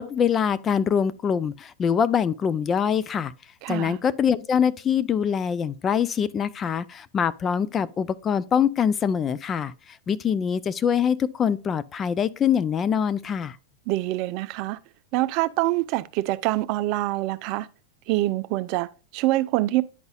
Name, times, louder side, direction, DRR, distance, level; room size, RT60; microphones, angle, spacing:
voice 1, 0.0-3.3 3.7-13.6, left 7 dB, 25° left, 0.4 m, -24 dB
voice 2, 3.6-4.0 13.9-14.8 15.1-17.7 18.1-19.8, right 18 dB, 50° right, 0.4 m, -25 dB
10.5 x 4.0 x 2.3 m
hypercardioid pair, 115°, 0 cm